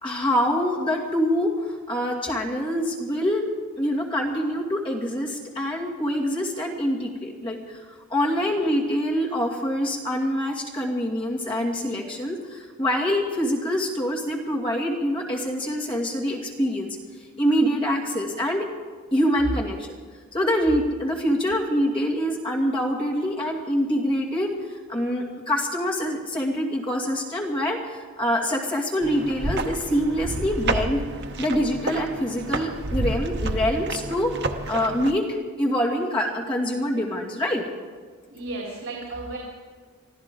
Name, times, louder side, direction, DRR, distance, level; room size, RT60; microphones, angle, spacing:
voice 1, 0.0-3.5 3.8-17.0 17.4-18.7 19.1-20.0 20.3-24.5 24.9-31.0 31.4-34.4 34.7-35.3 35.6-37.7, equal, 25° left, -3 dB, 2.3 m, -25 dB
sound 1, 29.0-35.1, right 2 dB, 50° right, 0.9 m, -30 dB
voice 2, 38.3-39.4, right 2 dB, 75° right, -3 dB, 3.6 m, -34 dB
25.0 x 14.5 x 3.8 m, 1.5 s
head